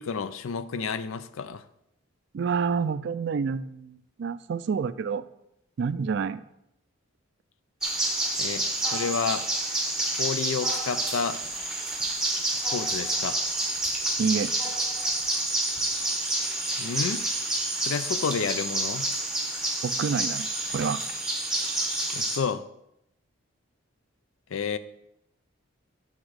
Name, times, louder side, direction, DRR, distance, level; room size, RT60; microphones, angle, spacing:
voice 1, 0.0-1.6 8.4-8.7 8.9-9.5 10.2-11.4 12.5-13.4 16.8-17.3 17.8-19.1 22.1-22.6 24.5-24.8, left 6 dB, 75° left, 13 dB, 0.4 m, -30 dB
voice 2, 2.3-5.3 5.8-6.4 14.2-14.5 19.8-20.5 20.7-21.0, right 5 dB, 55° right, 14 dB, 0.3 m, -28 dB
sound 1, 7.8-22.4, right 2 dB, 5° right, 0.9 m, -28 dB
8.0 x 3.6 x 6.4 m, 0.80 s
head